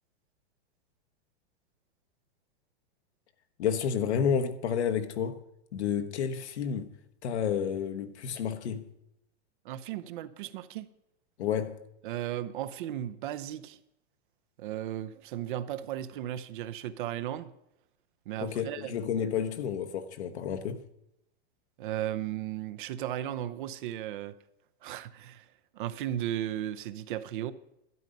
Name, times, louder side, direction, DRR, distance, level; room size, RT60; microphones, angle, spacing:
voice 1, 3.6-5.4 5.7-6.9 7.2-8.9 11.4-11.8 18.4-20.8, left 7 dB, 80° left, 1.3 m, -30 dB
voice 2, 9.6-10.9 12.0-13.8 14.6-17.5 18.3-19.0 21.8-24.3 24.8-25.5 25.7-27.5, right 12 dB, 50° right, 0.7 m, -35 dB
12.5 x 9.1 x 5.3 m
supercardioid pair, 160°, 33 cm